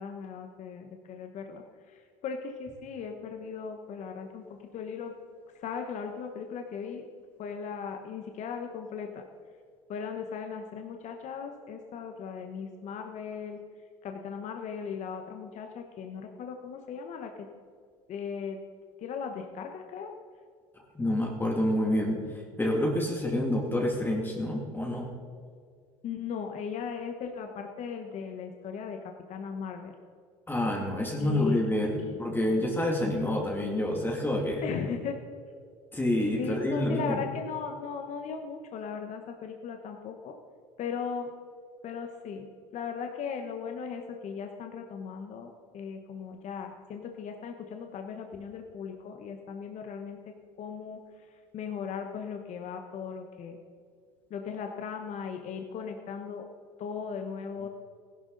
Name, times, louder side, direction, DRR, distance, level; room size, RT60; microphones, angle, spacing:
voice 1, 0.0-1.6 2.2-4.4 4.7-5.1 5.6-7.1 7.4-9.2 9.9-13.6 14.0-17.3 18.1-18.6 19.0-20.1 26.0-29.0 29.3-29.9 31.2-31.6 32.0-32.2 34.6-35.2 36.4-40.3 40.8-41.3 41.8-42.5 42.7-50.2 50.6-51.0 51.5-53.6 54.3-56.4 56.8-57.7, left 6 dB, 55° left, 4 dB, 1.2 m, -37 dB
voice 2, 20.9-25.1 30.5-34.6 35.9-37.3, left 1 dB, 15° left, -1 dB, 2.4 m, -28 dB
15.5 x 12.0 x 4.0 m, 2.1 s
supercardioid pair, 90°, 15 cm